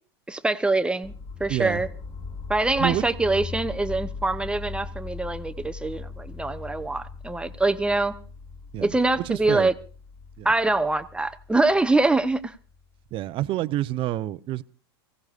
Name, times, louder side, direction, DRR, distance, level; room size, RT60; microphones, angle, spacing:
voice 1, 0.3-1.1 1.4-1.9 2.5-8.1 8.8-9.7 10.4-12.5, right 2 dB, 5° right, 0.8 m, -24 dB
sound 1, 1.0-13.0, left 4 dB, 20° left, 1.9 m, -39 dB
voice 2, 1.5-1.9 2.8-3.0 8.7-8.9 9.2-9.7 10.4-10.5 13.1-14.6, right 14 dB, 40° right, 0.8 m, -28 dB
24.0 x 17.0 x 2.5 m
hypercardioid pair, 105°, 13 cm